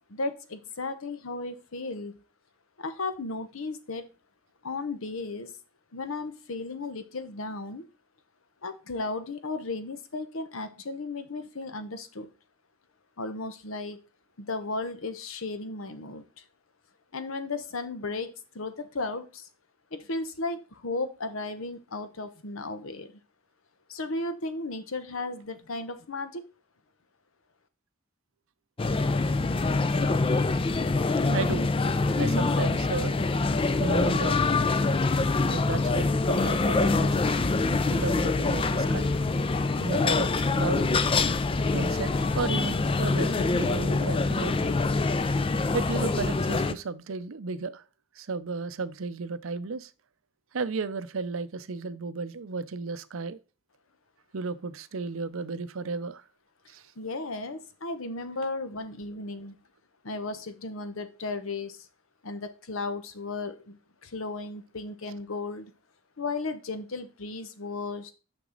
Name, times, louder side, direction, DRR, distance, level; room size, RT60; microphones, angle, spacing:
voice 1, 0.1-2.2 2.8-4.1 4.6-5.5 5.9-7.9 8.6-12.3 13.2-14.0 14.4-16.4 17.1-19.5 19.9-23.2 23.9-26.4 57.0-59.6 60.0-61.9 62.2-65.7 66.2-68.1, left 3 dB, 80° left, 1.0 m, -35 dB
sound 1, 28.8-46.7, left 3 dB, 25° left, 0.4 m, -25 dB
voice 2, 31.3-31.7 32.2-33.2 33.8-34.4 35.4-37.2 37.9-39.1 39.8-40.9 41.7-44.8 45.7-47.8 48.2-49.9 50.5-53.4 54.3-56.2 56.7-56.9, right 4 dB, 75° right, 0.6 m, -33 dB
6.1 x 6.0 x 3.9 m
head